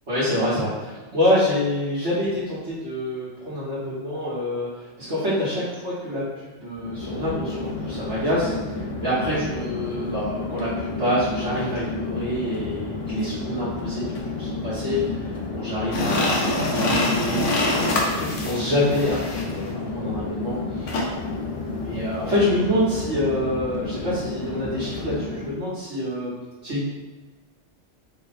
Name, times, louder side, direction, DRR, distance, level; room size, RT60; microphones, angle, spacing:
voice 1, 0.1-21.0 21.7-26.3 26.6-26.9, left 1 dB, 65° right, -11 dB, 1.5 m, -26 dB
Chatter / Fixed-wing aircraft airplane, 6.7-25.6, left 3 dB, 50° left, 0.4 m, -31 dB
sound 1, 15.9-19.6 20.9-21.1, left 2 dB, 75° left, 1.1 m, -25 dB
4.5 x 2.1 x 4.1 m, 1.2 s
omnidirectional pair, 1.3 m